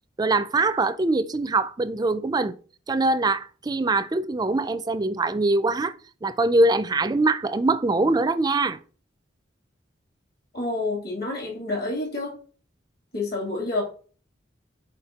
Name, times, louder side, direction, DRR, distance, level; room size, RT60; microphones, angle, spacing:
voice 1, 0.2-2.6 2.9-5.9 6.2-8.8, right 2 dB, 20° right, 0.3 m, -23 dB
voice 2, 10.5-12.4 13.1-13.8, left 2 dB, 55° left, 2.3 m, -28 dB
4.3 x 4.3 x 5.1 m
head